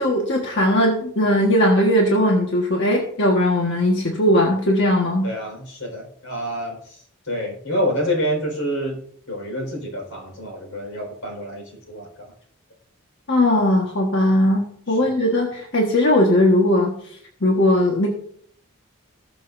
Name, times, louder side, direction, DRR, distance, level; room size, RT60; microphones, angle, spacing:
voice 1, 0.0-5.3 13.3-16.9 17.4-18.1, left 1 dB, 55° left, -1 dB, 1.5 m, -18 dB
voice 2, 5.2-6.8 7.3-9.0 9.3-12.1 15.0-15.1, equal, 85° left, 2 dB, 4.7 m, -27 dB
20.0 x 6.7 x 2.6 m, 0.64 s
head